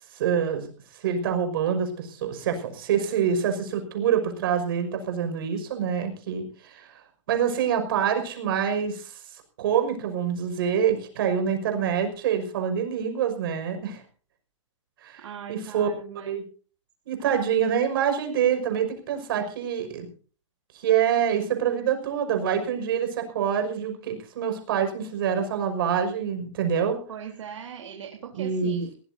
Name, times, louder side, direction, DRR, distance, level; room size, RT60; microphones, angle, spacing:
voice 1, 0.1-0.7 0.9-7.0 7.3-14.0 15.0-15.9 16.3-16.4 17.1-20.1 20.7-27.0 28.4-28.8, right 8 dB, 45° right, 6 dB, 5.8 m, -26 dB
voice 2, 15.2-16.4 17.2-17.5 27.1-28.9, right 8 dB, 70° right, 2 dB, 3.7 m, -40 dB
22.0 x 19.0 x 2.8 m, 0.41 s
hypercardioid pair, 170°, 16 cm